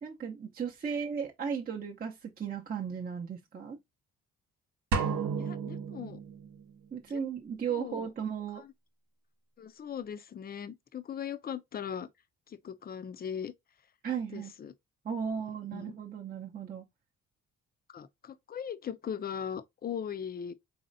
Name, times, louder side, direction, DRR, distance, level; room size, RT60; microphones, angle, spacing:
voice 1, 0.0-3.8 6.9-8.6 14.0-14.5 15.0-16.9, right 7 dB, 30° right, 0.6 m, -36 dB
sound 1, 4.9-6.7, right 5 dB, 70° right, 0.8 m, -32 dB
voice 2, 5.4-6.2 7.1-7.2 7.8-8.1 8.6-8.7 9.6-12.1 12.5-13.5 14.3-14.7 15.7-15.9 17.9-20.5, left 8 dB, 30° left, 0.4 m, -39 dB
4.2 x 3.1 x 2.5 m
cardioid pair, 90°, 30 cm